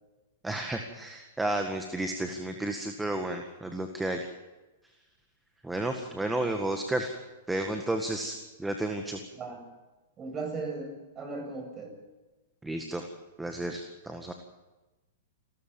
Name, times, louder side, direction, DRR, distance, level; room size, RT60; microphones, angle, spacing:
voice 1, 0.4-4.3 5.6-7.1 7.5-9.2 12.6-13.1 13.4-14.3, right 1 dB, 5° right, 5 dB, 1.8 m, -32 dB
voice 2, 10.2-11.9, right 3 dB, 25° right, 3 dB, 7.1 m, -37 dB
29.0 x 13.5 x 7.2 m, 1.1 s
figure-of-eight pair, 105°, 0 cm